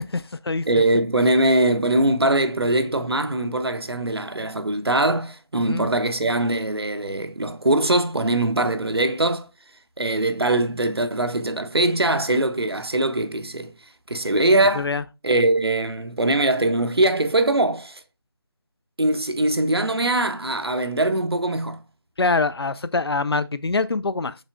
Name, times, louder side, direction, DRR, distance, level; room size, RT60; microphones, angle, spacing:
voice 1, 0.1-0.7 5.5-5.9 14.7-15.0 22.2-24.4, left 3 dB, 75° left, 0.4 m, -24 dB
voice 2, 0.7-9.5 10.0-13.7 14.1-14.9 15.2-18.0 19.0-21.8, right 1 dB, 80° right, 0.7 m, -22 dB
6.3 x 3.3 x 2.3 m
figure-of-eight pair, 160°, 13 cm